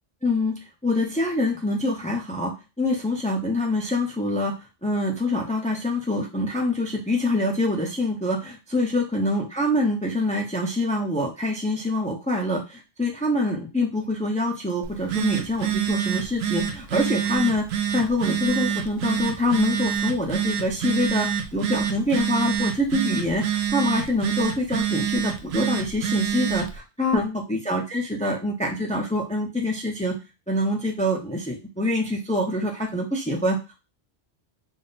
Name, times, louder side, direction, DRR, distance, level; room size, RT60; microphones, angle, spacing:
voice 1, 0.2-4.5 4.8-17.7 17.9-30.2 30.5-33.8, left 1 dB, 10° left, 0 dB, 0.6 m, -25 dB
Telephone, 14.8-26.8, right 9 dB, 75° right, 0.8 m, -27 dB
3.7 x 2.2 x 4.0 m, 0.28 s
omnidirectional pair, 1.1 m